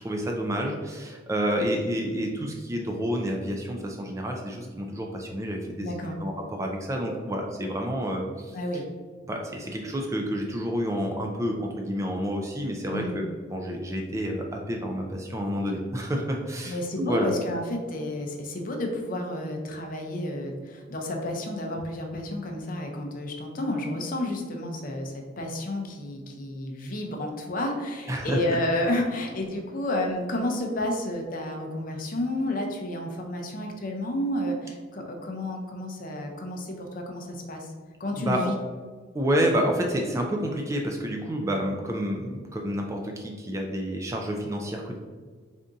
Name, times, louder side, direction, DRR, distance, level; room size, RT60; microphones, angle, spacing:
voice 1, 0.0-8.6 9.3-17.3 28.1-28.4 38.2-38.4 39.1-45.0, equal, 15° right, 1 dB, 0.3 m, -29 dB
voice 2, 5.8-6.2 8.5-8.9 12.9-13.2 16.7-37.7 38.0-38.6, left 1 dB, 45° left, 2 dB, 0.5 m, -31 dB
3.5 x 2.6 x 3.8 m, 1.5 s
head